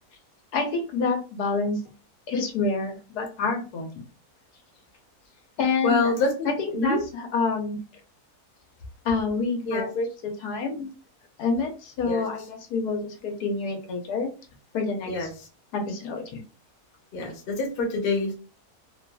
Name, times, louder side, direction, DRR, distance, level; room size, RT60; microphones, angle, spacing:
voice 1, 0.5-1.8 2.3-3.9 5.6-6.1 6.4-7.8 9.0-10.9 11.4-14.3 14.7-15.3 15.7-16.4, left 4 dB, 80° left, 3 dB, 1.2 m, -27 dB
voice 2, 5.8-6.5 6.7-7.0 9.6-9.9 12.0-12.3 15.0-15.3 17.1-18.3, left 3 dB, 45° left, 1 dB, 0.8 m, -26 dB
2.8 x 2.4 x 2.2 m, 0.34 s
omnidirectional pair, 1.6 m